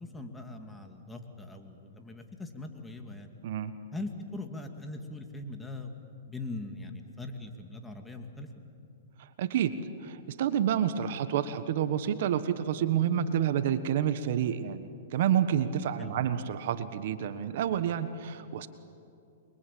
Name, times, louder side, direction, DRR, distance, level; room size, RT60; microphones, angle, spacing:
voice 1, 0.0-3.3 3.9-5.9 6.3-8.5 16.0-16.2, left 2 dB, 10° left, 4 dB, 2.4 m, -41 dB
voice 2, 3.4-3.7 9.2-9.7 10.0-18.7, right 9 dB, 60° right, 11 dB, 1.4 m, -29 dB
29.0 x 23.0 x 8.6 m, 2.6 s
hypercardioid pair, 130°, 0 cm